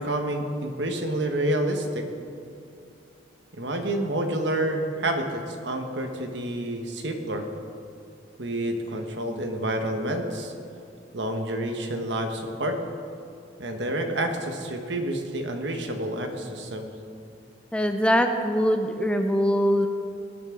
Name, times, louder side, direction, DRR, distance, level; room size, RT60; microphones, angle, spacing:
voice 1, 0.0-2.1 3.6-7.5 8.4-10.5 11.1-12.8 13.6-16.9, right 1 dB, 70° right, 4 dB, 1.4 m, -28 dB
voice 2, 17.7-19.9, equal, 5° left, 6 dB, 0.5 m, -22 dB
20.0 x 10.5 x 3.9 m, 2.5 s
head